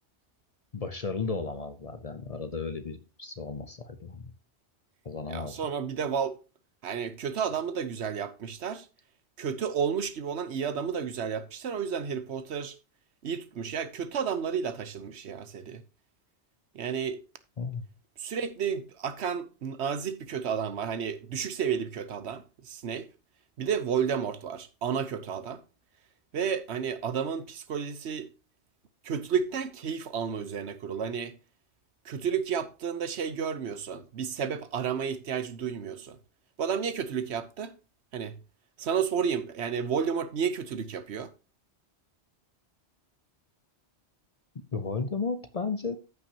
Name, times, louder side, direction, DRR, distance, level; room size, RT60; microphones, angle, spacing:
voice 1, 0.7-4.3 5.0-5.6 17.6-17.9 44.7-46.0, left 4 dB, 40° left, 0.7 m, -34 dB
voice 2, 5.3-6.4 6.8-8.9 9.4-12.8 13.2-15.8 16.7-17.2 18.2-23.0 23.6-25.6 26.3-28.3 29.0-31.4 32.0-36.2 36.6-37.7 38.1-38.3 38.8-41.3, right 7 dB, 75° right, 1.1 m, -31 dB
14.0 x 5.8 x 2.8 m
omnidirectional pair, 1.2 m